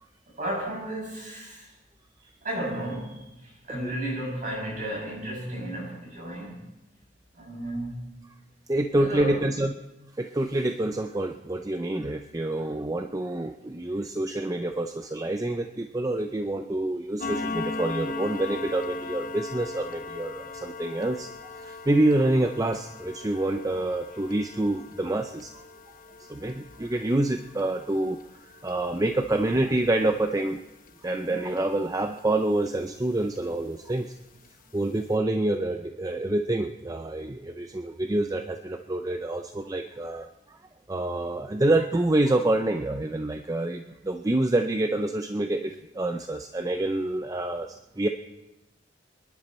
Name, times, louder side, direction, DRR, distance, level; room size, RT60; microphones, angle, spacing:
voice 1, 0.4-1.7 2.4-6.6 7.3-8.0 9.0-9.4, right 1 dB, 50° right, -2 dB, 7.2 m, -33 dB
voice 2, 8.7-9.7 10.2-25.6 26.3-28.2 28.4-30.6 31.0-34.1 34.7-40.6 40.9-48.1, right 1 dB, 20° right, 6 dB, 0.5 m, -27 dB
sound 1, 17.2-32.3 32.7-32.9 33.3-33.4 33.9-34.0 34.4-34.5 34.8-35.0, left 3 dB, 50° left, 1.0 m, -39 dB
27.0 x 11.0 x 4.3 m, 0.96 s
head